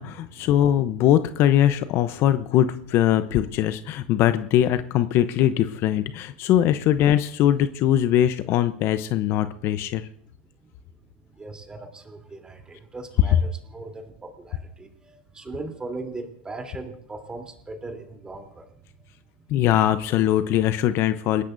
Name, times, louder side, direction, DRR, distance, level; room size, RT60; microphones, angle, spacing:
voice 1, 0.0-10.1 19.5-21.4, left 11 dB, 45° left, 11 dB, 0.8 m, -21 dB
voice 2, 11.4-18.7, right 3 dB, 15° right, 3 dB, 3.5 m, -38 dB
29.5 x 16.5 x 2.7 m, 0.68 s
hypercardioid pair, 110°, 6 cm